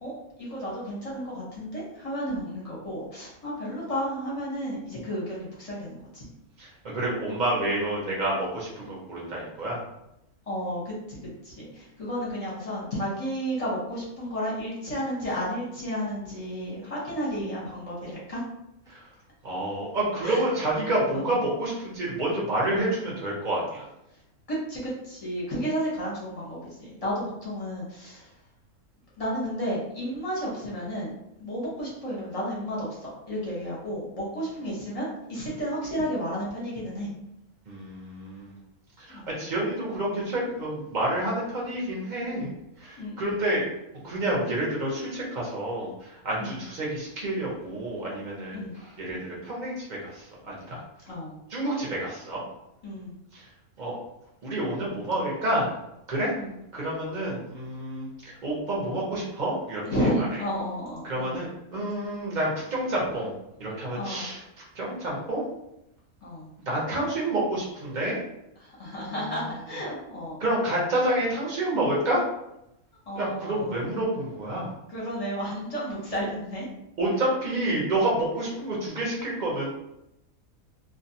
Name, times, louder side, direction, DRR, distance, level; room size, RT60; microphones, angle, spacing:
voice 1, 0.0-6.2 10.5-18.4 20.2-20.4 21.1-21.3 24.1-24.2 24.5-28.3 29.2-31.1 31.4-37.1 39.1-39.3 43.0-43.6 46.4-46.6 48.5-48.8 51.0-51.4 52.8-53.2 56.3-56.5 59.9-61.4 63.0-63.1 63.9-64.3 66.2-66.5 68.6-70.4 73.1-73.9 74.9-76.7, equal, 35° left, -6 dB, 0.6 m, -32 dB
voice 2, 6.6-9.8 18.9-19.1 19.4-23.9 37.7-38.6 39.0-42.5 42.8-43.6 44.0-50.8 51.5-52.4 53.3-53.5 53.8-53.9 54.4-55.7 56.1-56.3 56.7-60.1 61.0-63.3 63.6-65.4 66.7-68.2 69.1-69.4 70.4-72.2 73.1-74.7 77.0-79.7, right 1 dB, 45° right, -4 dB, 0.6 m, -29 dB
2.5 x 2.1 x 2.7 m, 0.85 s
omnidirectional pair, 1.5 m